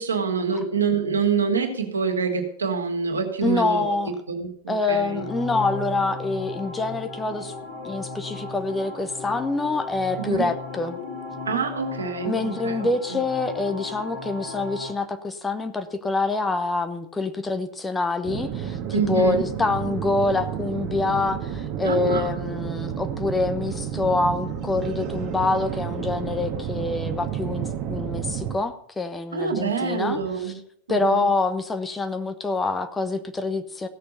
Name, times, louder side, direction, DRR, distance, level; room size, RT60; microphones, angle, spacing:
voice 1, 0.0-3.9 4.3-5.2 10.2-10.5 11.5-13.2 18.9-19.5 21.8-22.3 29.3-30.6 30.9-31.3, right 5 dB, 75° right, 3 dB, 2.5 m, -26 dB
voice 2, 3.4-4.1 4.7-7.5 7.8-11.0 12.2-30.2 30.9-33.9, left 3 dB, 10° left, 8 dB, 1.1 m, -26 dB
sound 1, 4.9-14.9, left 2 dB, 40° left, 3.4 m, -36 dB
sound 2, 18.2-28.6, right 9 dB, 40° right, 1.5 m, -31 dB
16.0 x 6.7 x 6.7 m, 0.65 s
figure-of-eight pair, 90°, 0 cm